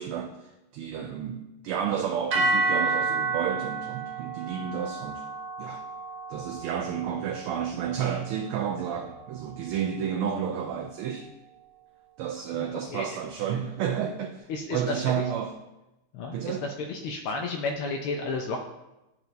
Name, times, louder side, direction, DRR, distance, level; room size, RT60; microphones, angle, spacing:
voice 1, 0.0-5.3 5.6-5.8 6.3-11.3 12.2-15.5 16.3-16.6, right 8 dB, 80° right, 3 dB, 1.4 m, -31 dB
sound 1, 2.3-10.6, right 3 dB, 60° right, 1.2 m, -32 dB
voice 2, 12.6-13.1 14.5-15.0 16.1-18.6, left 3 dB, 80° left, 2 dB, 1.5 m, -32 dB
11.0 x 4.5 x 2.6 m, 0.97 s
omnidirectional pair, 2.4 m